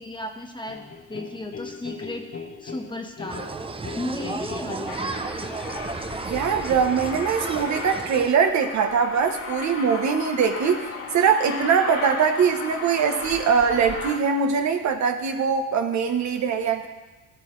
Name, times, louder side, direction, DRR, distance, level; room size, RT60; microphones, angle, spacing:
voice 1, 0.0-2.3 2.6-3.4 3.9-5.2, left 1 dB, 15° left, 3 dB, 1.2 m, -35 dB
sound 1, 0.7-5.7, left 5 dB, 55° left, 1.6 m, -39 dB
sound 2, 3.3-8.3, right 3 dB, 20° right, 0.6 m, -33 dB
Aircraft, 4.9-14.2, left 3 dB, 75° left, 2.9 m, -35 dB
voice 2, 6.2-16.9, right 6 dB, 65° right, 5 dB, 1.1 m, -22 dB
14.5 x 8.0 x 3.2 m, 1.1 s
cardioid pair, 90°, 30 cm